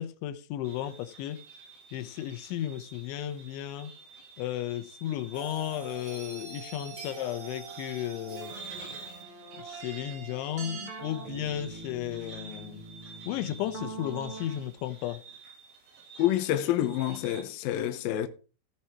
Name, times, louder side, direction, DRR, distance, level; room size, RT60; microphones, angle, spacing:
voice 1, 0.0-1.4 1.9-3.9 4.4-8.5 9.6-12.8 13.3-15.2, left 12 dB, 90° left, 3.2 m, -34 dB
sound 1, 0.6-17.4, right 5 dB, 85° right, 4.8 m, -50 dB
sound 2, 5.3-14.7, right 4 dB, 45° right, 1.9 m, -43 dB
voice 2, 16.2-18.3, left 12 dB, 70° left, 2.3 m, -27 dB
16.0 x 5.8 x 4.5 m
omnidirectional pair, 5.2 m